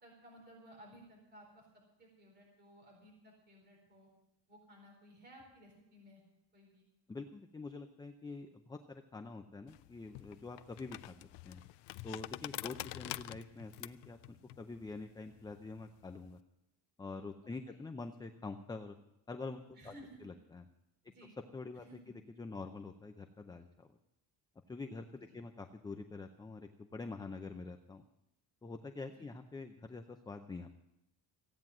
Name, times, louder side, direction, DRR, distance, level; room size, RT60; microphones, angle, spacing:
voice 1, 0.0-4.1 4.5-6.2 6.5-6.9 17.4-17.8 19.7-20.2 21.0-21.4 21.8-22.1 25.3-25.4 29.2-29.3, equal, 25° right, -1 dB, 4.2 m, -58 dB
voice 2, 7.1-11.2 11.4-11.6 12.0-16.4 17.0-19.0 19.3-19.9 20.2-20.6 21.5-21.8 22.4-23.9 24.7-28.0 28.6-30.7, left 3 dB, 10° left, 6 dB, 0.5 m, -46 dB
sound 1, 9.7-16.3, left 17 dB, 80° left, 0.6 m, -47 dB
15.5 x 9.2 x 7.3 m, 0.88 s
cardioid pair, 175°, 41 cm